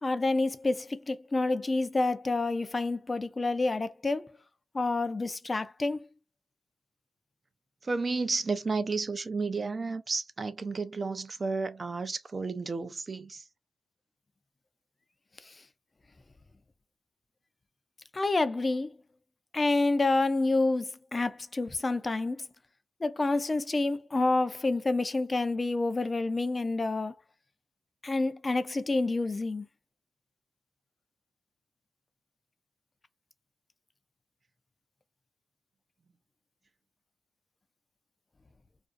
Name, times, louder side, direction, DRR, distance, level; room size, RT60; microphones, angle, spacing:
voice 1, 0.0-4.3 4.7-6.0 18.1-19.0 19.5-22.5 23.0-27.1 28.0-29.7, left 2 dB, 30° left, 0.4 m, -28 dB
voice 2, 7.8-13.5, right 4 dB, 40° right, 0.4 m, -32 dB
2.5 x 2.3 x 2.4 m
cardioid pair, 80°, 0 cm